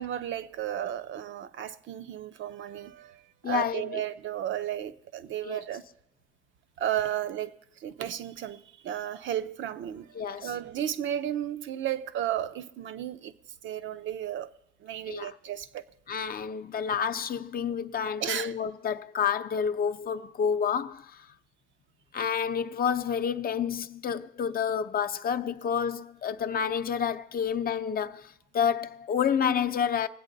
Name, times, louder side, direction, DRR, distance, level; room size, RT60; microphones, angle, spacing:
voice 1, 0.0-5.8 6.8-7.5 7.8-13.3 13.6-14.5 14.8-15.9 18.2-18.5, right 11 dB, 75° right, 0.7 m, -34 dB
voice 2, 3.4-4.0 5.4-5.6 10.2-10.5 15.1-15.3 16.1-21.2 22.1-30.1, left 7 dB, 50° left, 0.5 m, -29 dB
20.5 x 8.2 x 3.9 m
cardioid pair, 90°, 20 cm